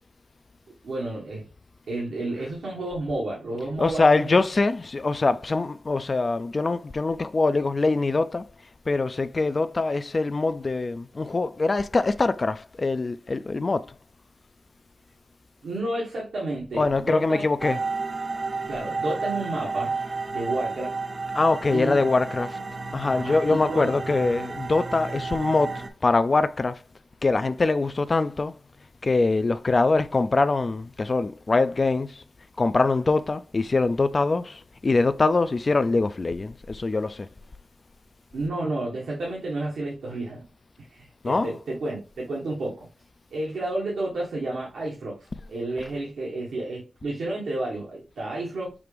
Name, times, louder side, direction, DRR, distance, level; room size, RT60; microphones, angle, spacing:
voice 1, 0.8-1.5 1.9-4.4 15.6-17.4 18.7-19.9 20.3-21.0 21.7-22.0 23.1-24.0 38.3-40.4 40.8-42.9 43.3-48.7, right 2 dB, 85° right, 1.5 m, -31 dB
voice 2, 3.8-8.4 8.9-13.9 16.8-17.8 21.3-22.6 22.9-26.8 27.2-28.5 29.0-32.2 32.6-37.3 41.2-41.5, left 3 dB, 40° left, 0.3 m, -23 dB
sound 1, 17.6-25.9, right 4 dB, 45° right, 0.7 m, -31 dB
6.0 x 2.5 x 3.3 m
cardioid pair, 65°, 0 cm